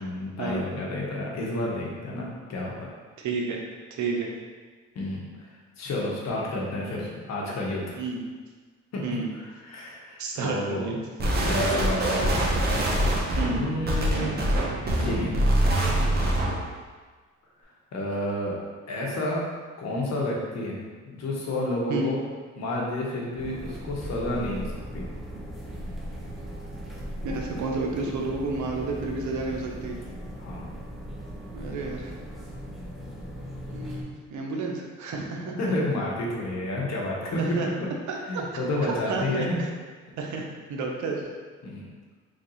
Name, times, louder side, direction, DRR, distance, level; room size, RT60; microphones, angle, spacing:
voice 1, 0.0-2.9 4.9-5.5 5.8-8.0 8.9-9.1 9.3-11.0 11.4-12.5 13.0-14.5 15.0-15.3 17.6-18.6 18.9-19.4 19.8-20.8 21.1-22.2 22.6-25.1 30.4-30.7 35.6-37.9 38.3-39.6 41.6-41.8, left 1 dB, 60° left, -3 dB, 1.0 m, -30 dB
voice 2, 3.2-3.6 3.9-4.3 8.0-8.2 9.0-9.3 10.2-11.0 13.4-13.6 21.9-22.1 27.2-30.0 31.5-32.1 33.7-35.6 37.4-37.7 38.1-38.2 38.9-39.2 40.2-40.4 40.7-41.3, right 3 dB, 75° right, 0 dB, 0.7 m, -30 dB
sound 1, 11.2-16.7, right 1 dB, 30° right, 0.8 m, -24 dB
sound 2, 23.4-34.0, equal, ahead, 0.7 m, -38 dB
3.3 x 2.6 x 3.9 m, 1.4 s
cardioid pair, 90°, 30 cm